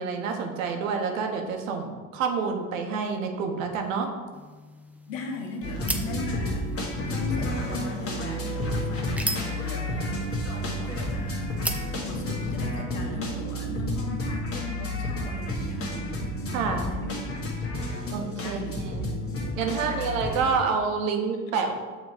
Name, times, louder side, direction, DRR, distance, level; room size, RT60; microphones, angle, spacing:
voice 1, 0.0-4.1 16.5-16.9 18.1-18.6 18.8-19.1 19.6-21.7, right 5 dB, 90° right, 4 dB, 0.9 m, -28 dB
sound 1, 4.3-12.6, right 1 dB, 5° right, 0.5 m, -39 dB
voice 2, 5.1-6.7 7.0-11.8 12.1-17.3 17.9-19.2 19.8-20.3, left 3 dB, 90° left, 2 dB, 1.0 m, -38 dB
sound 2, 5.6-20.6, left 1 dB, 35° left, 1.5 m, -31 dB
6.5 x 3.1 x 4.8 m, 1.3 s
supercardioid pair, 80°, 38 cm